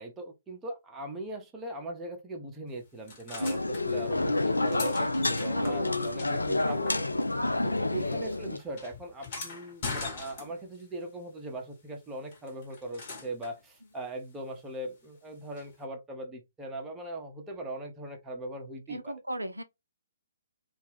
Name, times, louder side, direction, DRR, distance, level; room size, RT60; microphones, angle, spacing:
voice 1, 0.0-7.1 7.6-19.1, right 1 dB, 15° right, 0.7 m, -40 dB
sound 1, 3.1-3.8 4.4-7.4 7.7-10.8 12.3-13.6 15.6-15.7, left 4 dB, 40° left, 1.2 m, -41 dB
sound 2, 3.4-8.6, left 2 dB, 85° left, 0.3 m, -29 dB
voice 2, 5.4-6.5 7.7-8.2 18.9-19.6, right 1 dB, 85° right, 0.4 m, -39 dB
2.4 x 2.2 x 3.3 m
figure-of-eight pair, 130°, 0 cm